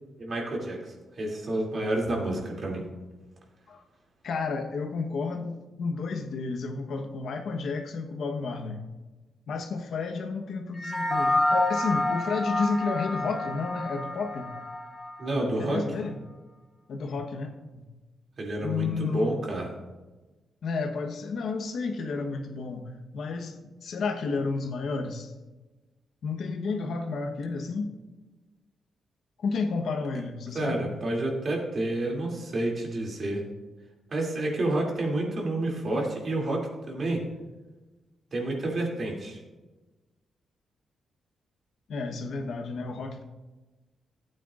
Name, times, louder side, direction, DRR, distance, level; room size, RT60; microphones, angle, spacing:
voice 1, 0.2-2.8 15.2-15.8 18.4-19.7 30.5-33.4 34.1-37.2 38.3-39.4, right 1 dB, 45° right, -1 dB, 2.6 m, -29 dB
voice 2, 4.2-8.8 9.5-14.5 15.4-16.2 16.9-17.8 18.6-19.3 20.6-25.3 26.2-27.9 29.4-30.9 41.9-43.2, left 4 dB, 70° left, 5 dB, 1.1 m, -31 dB
sound 1, 10.7-15.4, left 2 dB, 20° left, 1.9 m, -28 dB
15.5 x 9.0 x 2.5 m, 1.2 s
wide cardioid pair, 135°, 0 cm